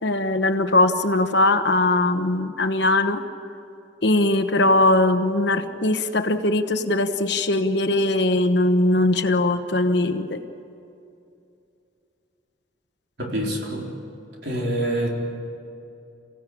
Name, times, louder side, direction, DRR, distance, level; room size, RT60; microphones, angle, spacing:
voice 1, 0.0-3.2 4.0-10.4, left 2 dB, 60° left, 8 dB, 1.2 m, -20 dB
voice 2, 13.2-13.9 14.4-15.2, right 1 dB, 60° right, -1 dB, 4.3 m, -26 dB
28.0 x 16.5 x 8.6 m, 2.7 s
head